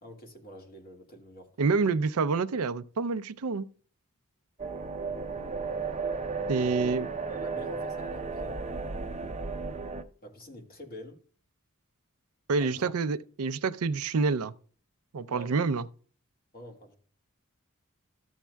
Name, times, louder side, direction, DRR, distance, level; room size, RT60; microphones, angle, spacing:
voice 1, 0.0-1.5 1.8-1.9 6.5-8.6 10.2-11.2 12.6-12.9 15.3-15.5 16.5-17.0, right 1 dB, 45° left, 1.8 m, -46 dB
voice 2, 1.6-3.7 6.5-7.1 12.5-14.5 15.1-15.9, right 4 dB, 80° right, 0.5 m, -27 dB
sound 1, 4.6-10.0, right 4 dB, 30° right, 0.6 m, -34 dB
14.0 x 7.2 x 2.3 m
head